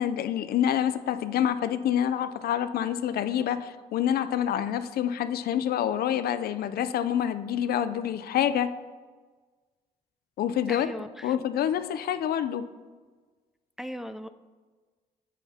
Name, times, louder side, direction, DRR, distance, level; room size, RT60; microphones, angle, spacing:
voice 1, 0.0-8.7 10.4-10.9 11.2-12.7, left 10 dB, 70° left, 12 dB, 0.5 m, -27 dB
voice 2, 10.7-11.4 13.8-14.3, equal, ahead, 10 dB, 0.4 m, -37 dB
9.1 x 8.9 x 2.8 m, 1.4 s
supercardioid pair, 65°, 16 cm